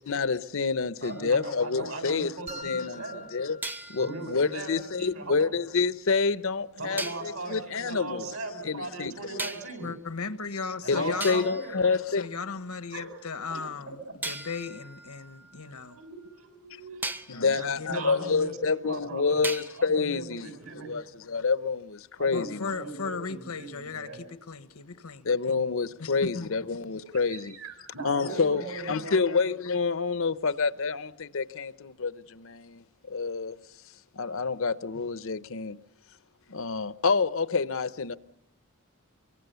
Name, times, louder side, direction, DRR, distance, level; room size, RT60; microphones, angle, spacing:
voice 1, 0.1-2.3 2.6-3.0 3.3-3.6 3.9-8.3 8.6-9.5 10.9-12.3 17.3-20.5 20.9-22.7 25.2-27.5 28.0-33.6 34.1-35.8 36.5-38.2, left 4 dB, 65° left, 0.8 m, -28 dB
sound 1, 1.0-2.4 3.6-5.7 7.0-7.4 9.4-9.9 10.7-10.8 11.2-12.8 14.2-16.4 17.0-17.4 19.4-20.0, right 2 dB, 10° right, 0.8 m, -40 dB
voice 2, 1.0-3.2 4.0-5.5 6.8-9.9 10.8-11.8 12.9-13.2 15.8-17.2 17.5-19.4 19.8-20.9 22.2-24.2 27.3-29.2, right 3 dB, 70° right, 7.4 m, -39 dB
sound 2, 2.5-4.5, left 2 dB, 30° right, 1.2 m, -44 dB
voice 3, 9.8-11.5 12.1-14.0 14.2-16.0 17.3-18.3 22.3-25.6 26.0-26.5, left 4 dB, 90° left, 1.3 m, -36 dB
24.5 x 24.0 x 6.9 m
head